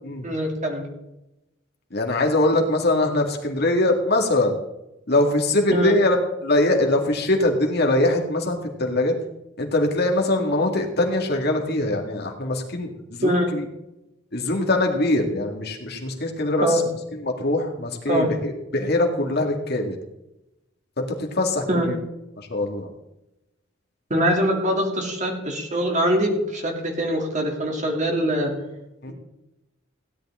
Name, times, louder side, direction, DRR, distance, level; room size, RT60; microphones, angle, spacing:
voice 1, 0.2-0.8 5.7-5.9 13.2-13.5 16.6-16.8 18.1-18.3 21.7-21.9 24.1-28.5, equal, 40° right, 1 dB, 2.9 m, -23 dB
voice 2, 1.9-4.5 5.1-6.2 6.4-9.1 9.6-13.6 14.3-16.7 17.2-20.0 21.0-22.0 22.4-22.9 29.0-29.1, left 2 dB, 55° left, 2 dB, 2.1 m, -22 dB
16.5 x 10.5 x 3.7 m, 0.91 s
head